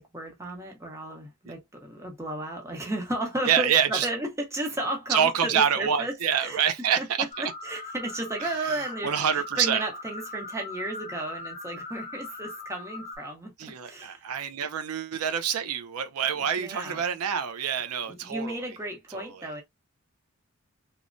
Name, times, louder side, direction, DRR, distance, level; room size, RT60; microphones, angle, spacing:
voice 1, 0.0-6.6 7.0-13.5 13.8-14.3 16.4-17.1 18.1-19.6, right 1 dB, 15° right, 0.8 m, -34 dB
voice 2, 3.4-4.1 5.1-7.0 8.7-9.8 13.6-18.6 19.1-19.5, right 8 dB, 85° right, 0.5 m, -26 dB
sound 1, 7.3-13.2, left 2 dB, 25° left, 0.7 m, -40 dB
3.0 x 2.1 x 2.5 m
head